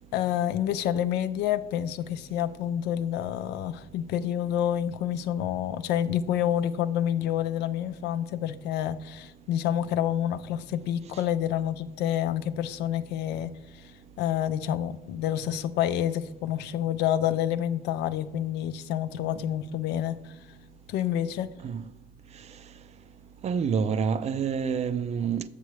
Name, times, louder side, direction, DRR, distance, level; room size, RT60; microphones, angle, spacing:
voice 1, 0.1-13.8 14.2-20.4 20.9-21.5, left 10 dB, 85° left, 0.5 m, -28 dB
voice 2, 23.4-25.4, right 6 dB, 40° right, 0.4 m, -27 dB
7.5 x 6.8 x 3.2 m
cardioid pair, 110°, 17 cm